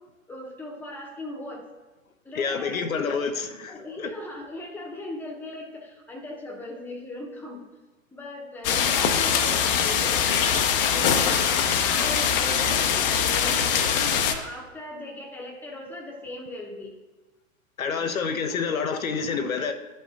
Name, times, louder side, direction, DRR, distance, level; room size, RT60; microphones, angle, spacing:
voice 1, 0.3-1.6 2.2-3.2 3.7-7.6 8.1-10.6 10.9-11.4 11.8-17.0 17.9-18.2, left 1 dB, 5° left, -1 dB, 0.9 m, -39 dB
voice 2, 2.3-4.1 17.8-19.7, left 5 dB, 75° left, 7 dB, 0.8 m, -28 dB
sound 1, 8.6-14.3, left 7 dB, 40° left, 0.7 m, -22 dB
12.0 x 5.4 x 2.5 m, 1.2 s
figure-of-eight pair, 105°, 41 cm